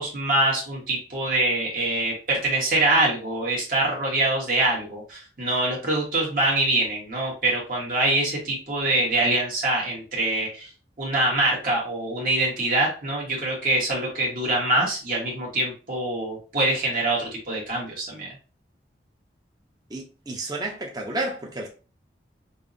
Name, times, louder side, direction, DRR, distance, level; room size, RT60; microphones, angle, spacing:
voice 1, 0.0-10.7 11.0-18.3, right 2 dB, 50° right, 1.1 m, -24 dB
voice 2, 19.9-21.7, right 2 dB, 20° right, 0.6 m, -31 dB
5.4 x 2.0 x 2.5 m
head